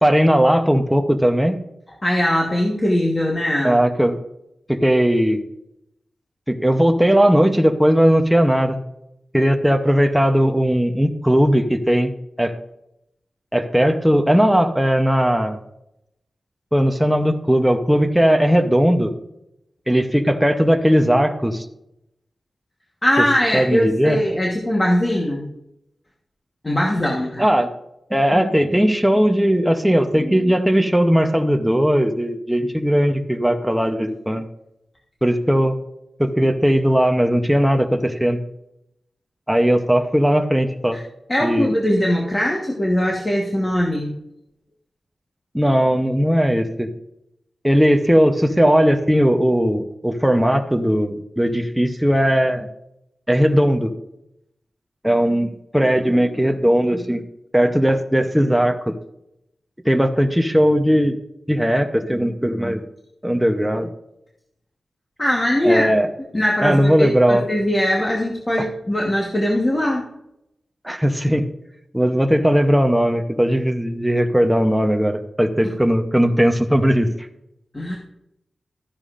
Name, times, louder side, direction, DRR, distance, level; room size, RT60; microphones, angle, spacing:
voice 1, 0.0-1.6 3.6-4.2 4.7-5.4 6.5-8.8 9.3-12.1 12.4-12.5 13.5-15.6 16.7-19.1 19.9-21.7 23.2-23.3 23.5-24.2 27.4-27.7 28.1-34.5 35.2-35.7 36.2-38.4 39.5-41.0 41.4-41.7 45.5-46.9 47.6-52.7 53.3-53.9 55.0-57.2 57.5-58.9 59.8-61.2 61.5-62.8 63.2-63.9 65.6-66.1 66.6-67.4 68.6-68.7 70.8-71.4 71.9-77.1, equal, 5° right, 5 dB, 0.7 m, -18 dB
voice 2, 2.0-3.8 23.0-25.5 26.6-27.4 40.9-41.0 41.3-44.1 65.2-65.9 66.3-70.0 75.6-75.7 77.7-78.0, left 1 dB, 25° left, -2 dB, 1.3 m, -20 dB
13.0 x 10.5 x 2.5 m, 0.82 s
wide cardioid pair, 125°, 0 cm